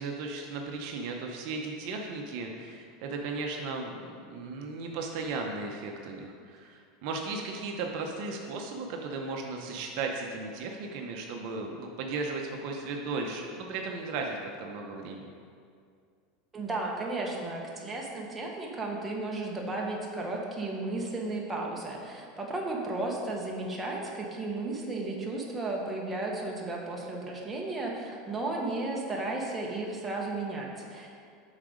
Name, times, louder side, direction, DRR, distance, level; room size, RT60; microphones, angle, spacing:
voice 1, 0.0-15.2, right 3 dB, 55° right, 2 dB, 0.7 m, -36 dB
voice 2, 16.5-31.2, right 2 dB, 10° right, -2 dB, 1.0 m, -34 dB
7.4 x 4.0 x 5.0 m, 2.3 s
supercardioid pair, 140°, 0 cm